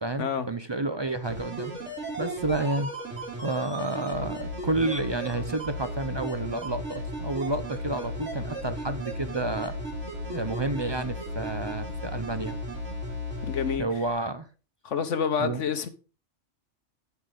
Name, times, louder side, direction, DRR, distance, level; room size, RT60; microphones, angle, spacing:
voice 1, 0.0-1.7 2.2-2.9 3.4-9.7 10.2-12.6 13.8-14.5 15.4-15.6, right 2 dB, 35° right, 0.4 m, -30 dB
sound 1, 1.2-13.8 14.1-14.2, equal, 85° right, 4.5 m, -35 dB
voice 2, 13.4-13.9 14.8-15.9, left 6 dB, 90° left, 1.4 m, -28 dB
8.1 x 8.0 x 5.1 m
omnidirectional pair, 1.2 m